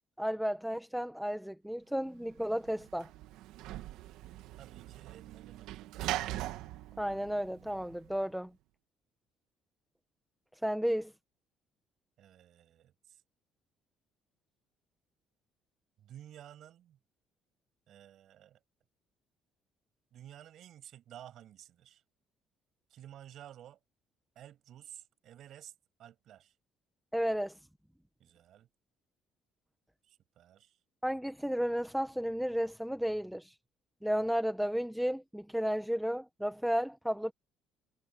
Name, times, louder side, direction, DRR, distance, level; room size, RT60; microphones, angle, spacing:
voice 1, 0.2-3.1 7.0-8.5 10.6-11.1 27.1-27.5 31.0-33.5 34.0-37.3, equal, ahead, 1.1 m, -33 dB
Sliding door / Slam, 2.3-8.2, right 14 dB, 80° right, 1.5 m, -41 dB
voice 2, 4.6-5.9 12.2-13.2 16.0-17.0 17.9-18.6 20.1-22.0 22.9-23.8 24.4-25.7 26.0-26.5 28.2-28.7 30.1-30.8, right 11 dB, 55° right, 7.7 m, -53 dB
cardioid pair, 135°, 0 cm